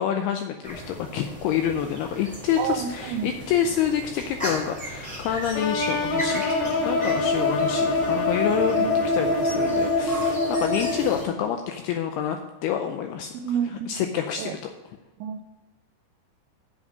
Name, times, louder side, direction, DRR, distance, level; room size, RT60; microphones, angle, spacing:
voice 1, 0.0-13.3 13.9-14.6, left 9 dB, 80° left, 5 dB, 2.3 m, -27 dB
sound 1, 0.6-11.3, right 1 dB, ahead, 2.3 m, -37 dB
voice 2, 2.6-3.3 8.8-8.9 13.3-14.0 14.4-14.6 15.2-15.4, right 8 dB, 85° right, 11 dB, 2.7 m, -29 dB
sound 2, 5.5-11.4, left 2 dB, 55° left, 4.5 m, -24 dB
7.6 x 7.1 x 6.5 m, 1.1 s
omnidirectional pair, 5.1 m